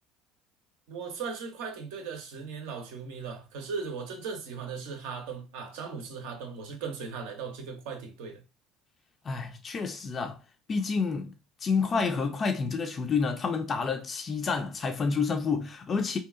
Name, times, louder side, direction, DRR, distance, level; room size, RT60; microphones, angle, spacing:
voice 1, 0.9-8.4, right 5 dB, 70° right, 0.6 m, -38 dB
voice 2, 9.2-10.4 10.7-11.3 11.6-16.2, left 5 dB, 35° left, 0.4 m, -29 dB
2.7 x 2.3 x 2.4 m
hypercardioid pair, 65°, 0 cm